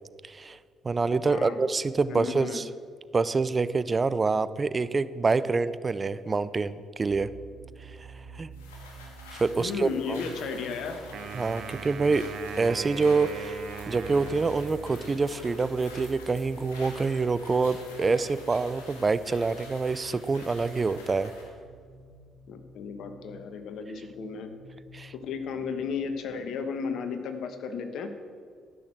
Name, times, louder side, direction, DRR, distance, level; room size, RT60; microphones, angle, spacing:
voice 1, 0.2-0.6 0.8-2.7 3.1-7.3 8.0-8.1 8.3-8.5 9.4-10.2 11.3-12.3 12.6-13.6 13.9-21.3 24.9-25.1, right 4 dB, 35° right, 15 dB, 0.5 m, -26 dB
voice 2, 1.2-1.6 2.1-2.6 9.6-11.0 22.5-24.5 25.1-28.1, left 5 dB, 65° left, 8 dB, 1.3 m, -34 dB
sound 1, 7.1-26.3, right 4 dB, 85° right, 2.2 m, -50 dB
sound 2, 8.5-21.5, left 3 dB, 90° left, 2.1 m, -47 dB
Wind instrument woodwind instrument, 11.1-15.4, right 6 dB, 65° right, 1.2 m, -40 dB
13.5 x 6.4 x 7.6 m, 2.1 s
hypercardioid pair, 50°, 0 cm